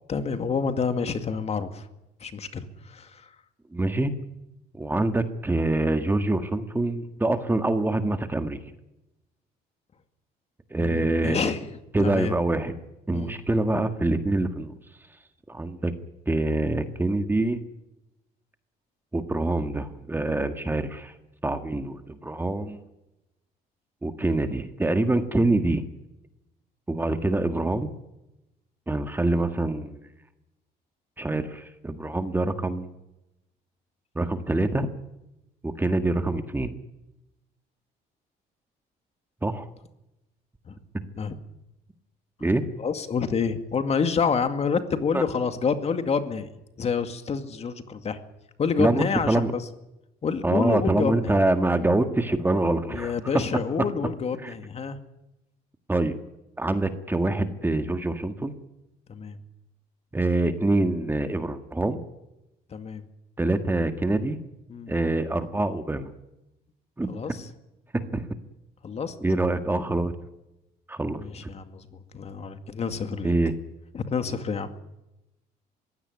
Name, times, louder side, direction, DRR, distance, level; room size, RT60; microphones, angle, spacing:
voice 1, 0.1-1.9 2.2-3.3 10.8-11.6 12.0-12.3 13.1-13.4 40.7-40.8 41.2-41.4 42.8-46.5 46.8-48.2 48.6-49.6 50.2-51.3 52.9-55.0 59.1-59.4 62.7-63.0 64.7-64.9 67.1-67.5 68.8-69.1 71.1-71.9 72.1-73.3 73.9-74.7, left 5 dB, 40° left, 8 dB, 2.2 m, -28 dB
voice 2, 3.7-4.1 4.8-8.6 10.7-11.4 11.9-12.7 13.1-14.7 15.5-15.9 16.3-17.6 19.1-21.1 21.4-22.8 24.0-25.9 26.9-27.9 28.9-30.0 31.2-32.9 34.2-34.9 35.6-36.7 39.4-39.7 42.4-42.6 45.1-45.2 48.8-49.5 50.4-53.1 54.4-54.5 55.9-56.2 56.6-58.5 60.1-62.0 63.4-64.4 64.9-66.1 67.0-67.2 67.9-68.2 69.2-70.1 70.9-71.2 73.2-73.5, right 2 dB, 10° right, 8 dB, 1.7 m, -25 dB
22.0 x 16.5 x 9.6 m, 0.93 s
cardioid pair, 110°, 17 cm